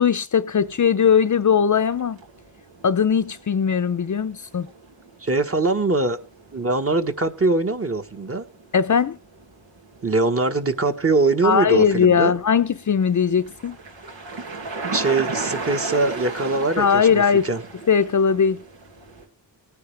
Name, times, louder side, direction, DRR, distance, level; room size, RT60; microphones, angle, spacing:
voice 1, 0.0-2.2 2.8-4.7 8.7-9.2 11.4-13.8 16.8-17.5 17.9-18.6, left 7 dB, 45° left, 0.7 m, -19 dB
sound 1, 0.6-19.2, right 3 dB, 90° right, 2.3 m, -37 dB
voice 2, 5.2-6.2 6.5-8.4 10.0-12.3 14.9-17.6, right 3 dB, 30° right, 1.4 m, -22 dB
19.0 x 9.7 x 3.4 m
cardioid pair, 75°, 44 cm